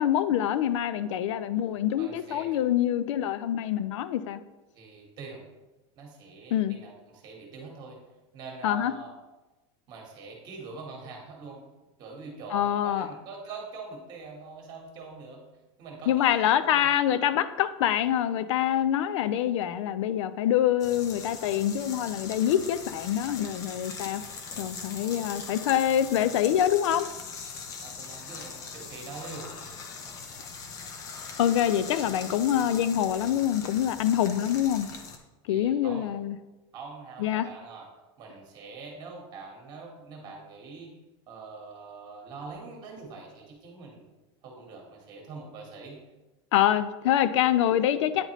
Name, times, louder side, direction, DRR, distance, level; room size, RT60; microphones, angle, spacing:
voice 1, 0.0-4.4 6.5-6.8 8.6-8.9 12.5-13.1 16.1-24.2 24.6-27.1 31.4-34.9 35.5-36.4 37.2-37.5 46.5-48.3, left 11 dB, 85° left, 13 dB, 0.4 m, -25 dB
voice 2, 2.0-2.5 4.7-5.4 6.0-8.0 8.3-9.1 9.9-11.6 12.0-15.4 15.8-16.9 27.8-29.5 35.5-36.1 36.7-37.9 38.2-40.9 41.3-44.0 44.4-46.0, right 4 dB, 30° right, 0 dB, 1.3 m, -43 dB
sound 1, 20.8-35.2, left 5 dB, 25° left, 0.5 m, -41 dB
9.3 x 4.1 x 3.0 m, 1.1 s
supercardioid pair, 175°, 15 cm